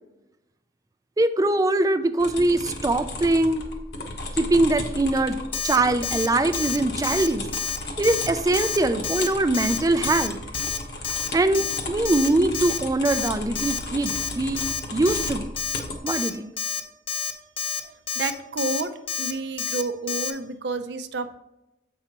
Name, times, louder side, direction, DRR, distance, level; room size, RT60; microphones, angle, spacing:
voice 1, 1.2-3.7 4.3-5.4 5.6-7.4 8.0-10.4 11.3-14.6 14.9-15.5 16.0-16.5, right 2 dB, 20° right, 10 dB, 0.3 m, -22 dB
sound 1, 2.2-16.0, left 2 dB, 65° left, 1.0 m, -34 dB
Alarm, 5.5-5.8 6.0-6.3 6.5-6.8 7.0-7.3 7.5-7.8 8.0-8.3 8.5-8.8 9.0-9.3 9.5-9.8 10.0-10.3 10.5-10.8 11.0-11.3 11.5-11.8 12.0-12.3 12.5-12.8 13.0-13.3 13.6-13.8 14.1-14.3 14.6-14.8 15.1-15.3 15.6-15.8 16.1-16.3 16.6-16.8 17.1-17.3 17.6-17.8 18.1-18.3 18.6-18.8 19.1-19.3 19.6-19.8 20.1-20.3, left 7 dB, 30° left, 0.6 m, -29 dB
voice 2, 17.8-18.9 19.2-21.3, right 3 dB, 70° right, 8 dB, 0.5 m, -30 dB
7.9 x 5.5 x 2.9 m, 0.93 s
head